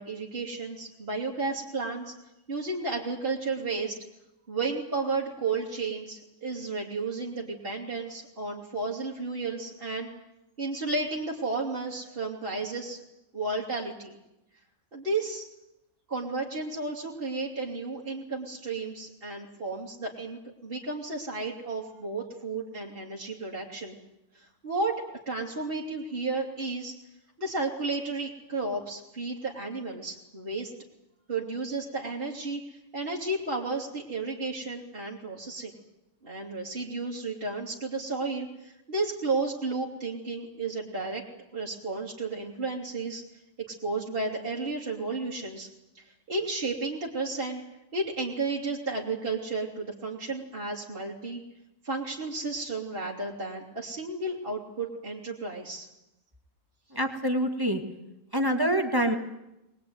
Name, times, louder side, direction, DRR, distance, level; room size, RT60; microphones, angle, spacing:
voice 1, 0.0-2.1 2.5-4.0 4.5-10.1 10.6-13.0 13.3-14.1 14.9-15.5 16.1-24.0 24.3-26.9 27.4-30.7 31.3-35.7 36.2-41.2 41.5-43.2 43.7-45.7 45.9-47.6 47.9-51.4 51.8-55.9, right 3 dB, 40° right, -4 dB, 3.1 m, -33 dB
voice 2, 56.9-57.8 58.3-59.2, right 1 dB, 15° right, 5 dB, 2.0 m, -25 dB
22.5 x 21.0 x 9.5 m, 0.90 s
omnidirectional pair, 1.5 m